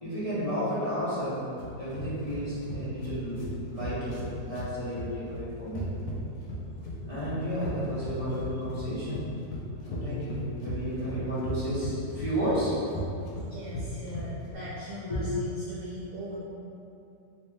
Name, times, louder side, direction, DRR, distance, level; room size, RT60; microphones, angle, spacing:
voice 1, 0.0-1.4 1.8-3.4 3.7-5.9 7.1-9.3 9.8-13.0 15.1-15.3, equal, 30° left, -13 dB, 0.7 m, -32 dB
sound 1, 1.6-14.6, equal, 75° left, 1.3 m, -37 dB
voice 2, 13.4-16.4, equal, 60° right, -9 dB, 0.9 m, -40 dB
3.0 x 2.8 x 3.4 m, 2.7 s
omnidirectional pair, 1.7 m